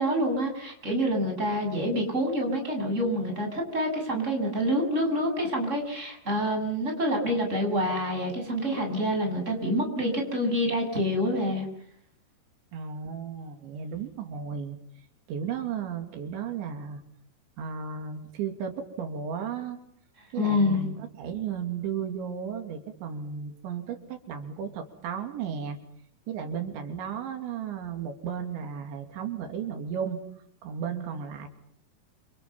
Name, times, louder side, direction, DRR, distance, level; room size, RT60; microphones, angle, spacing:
voice 1, 0.0-11.7 20.3-20.9, equal, 15° right, 2 dB, 8.2 m, -27 dB
voice 2, 12.7-14.8 15.3-17.0 17.6-19.8 20.3-25.8 26.3-30.2 30.6-31.5, right 7 dB, 90° right, 6 dB, 5.1 m, -34 dB
30.0 x 28.0 x 5.7 m, 0.64 s
omnidirectional pair, 5.1 m